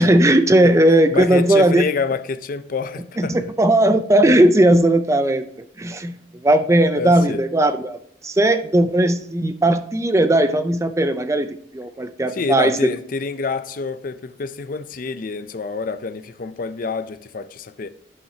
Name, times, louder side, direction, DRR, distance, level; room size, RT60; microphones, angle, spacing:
voice 1, 0.0-1.9 3.2-5.5 5.8-6.2 6.4-8.0 8.2-12.8, right 1 dB, 15° right, 0.4 m, -17 dB
voice 2, 1.1-3.4 7.0-7.4 12.3-17.9, left 4 dB, 45° left, 0.4 m, -27 dB
13.5 x 5.7 x 2.8 m
head